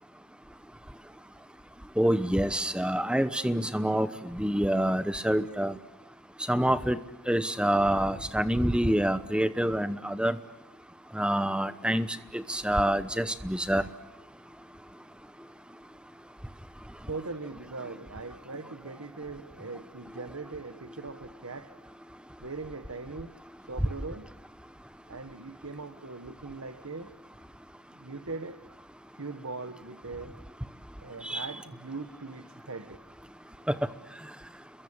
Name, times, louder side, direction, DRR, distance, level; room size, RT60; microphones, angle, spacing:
voice 1, 2.0-5.7 6.5-7.0 7.3-10.4 11.1-12.1 12.3-13.8 31.2-31.5 33.7-33.8, right 1 dB, 5° right, 13 dB, 0.9 m, -26 dB
voice 2, 17.1-21.8 22.4-23.3 23.7-24.3 25.1-27.1 27.9-28.6 29.1-30.4 31.0-33.0, right 3 dB, 75° right, 10 dB, 1.3 m, -40 dB
30.0 x 22.5 x 8.7 m, 0.93 s
head